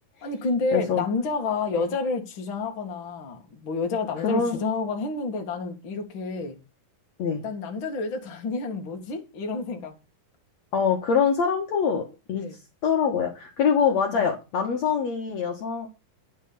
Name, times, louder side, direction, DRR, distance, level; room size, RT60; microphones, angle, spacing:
voice 1, 0.2-6.6 7.4-10.0 12.3-12.6 14.1-14.3, left 4 dB, 40° left, 2.3 m, -29 dB
voice 2, 0.7-1.0 1.7-1.8 4.2-4.6 7.2-7.4 10.7-12.0 12.3-12.5 12.8-15.9, left 6 dB, 60° left, 2.5 m, -24 dB
10.5 x 5.7 x 6.8 m
omnidirectional pair, 3.9 m